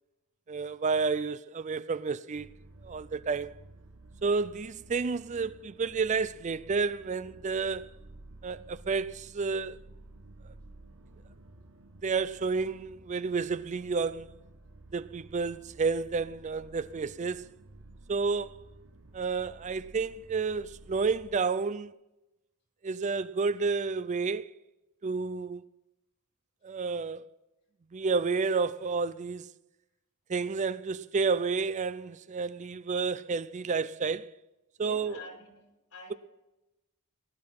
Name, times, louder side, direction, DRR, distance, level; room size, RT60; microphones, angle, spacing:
voice 1, 0.5-2.5 2.8-3.5 4.2-7.9 8.4-9.8 12.0-14.4 14.9-17.5 18.1-18.6 19.1-21.9 22.8-24.5 25.0-25.7 26.6-27.2 27.9-29.5 30.3-34.3 34.8-35.2, right 4 dB, 35° right, 0.4 m, -30 dB
sound 1, 2.4-21.4, right 2 dB, 65° right, 1.5 m, -53 dB
voice 2, 34.8-35.7 35.9-36.2, left 2 dB, 80° left, 5.3 m, -46 dB
18.5 x 10.5 x 5.7 m
head